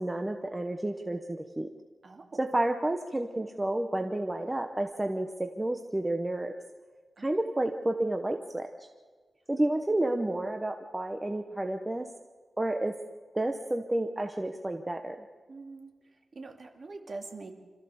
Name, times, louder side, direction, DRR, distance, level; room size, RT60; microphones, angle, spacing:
voice 1, 0.0-1.7 2.4-6.5 7.2-8.7 9.5-12.1 12.6-12.9 13.3-15.2, right 1 dB, 15° right, 5 dB, 0.9 m, -30 dB
voice 2, 2.0-2.4 7.2-7.3 15.5-15.9 16.3-17.5, right 3 dB, 40° right, 3 dB, 2.4 m, -43 dB
26.0 x 14.0 x 7.0 m, 1.4 s
wide cardioid pair, 160°, 0 cm